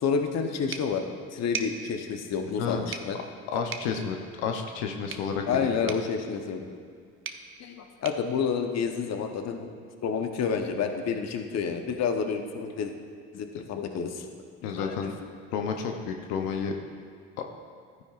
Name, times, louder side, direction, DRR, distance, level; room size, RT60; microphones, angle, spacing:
voice 1, 0.0-1.0 1.3-3.2 5.5-6.7 7.6-9.7 10.0-12.9 13.3-14.2 14.8-15.0, left 6 dB, 55° left, 5 dB, 0.9 m, -29 dB
sound 1, 0.7-9.4, right 6 dB, 45° right, 0.7 m, -43 dB
voice 2, 3.5-5.9 13.5-13.6 14.6-15.1 15.5-16.7 17.4-17.5, left 6 dB, 90° left, 3 dB, 0.7 m, -31 dB
13.0 x 9.6 x 2.4 m, 2.1 s
supercardioid pair, 80°, 31 cm